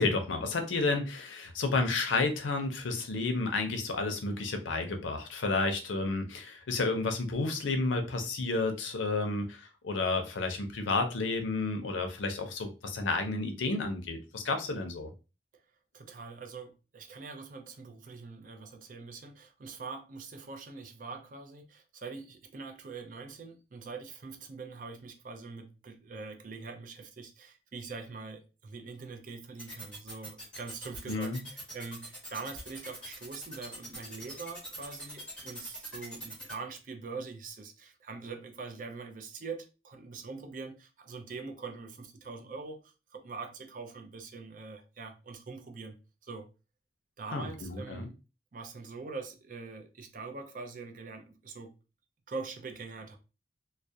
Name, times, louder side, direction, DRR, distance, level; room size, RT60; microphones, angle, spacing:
voice 1, 0.0-15.1 31.1-31.4 47.3-48.1, left 3 dB, 85° left, 0.5 m, -31 dB
voice 2, 15.9-42.8 43.1-46.5 47.2-48.2 48.5-51.7 52.3-53.2, right 4 dB, 45° right, 0.4 m, -43 dB
sound 1, 29.6-36.5, right 1 dB, 5° left, 1.0 m, -43 dB
2.3 x 2.0 x 2.6 m
head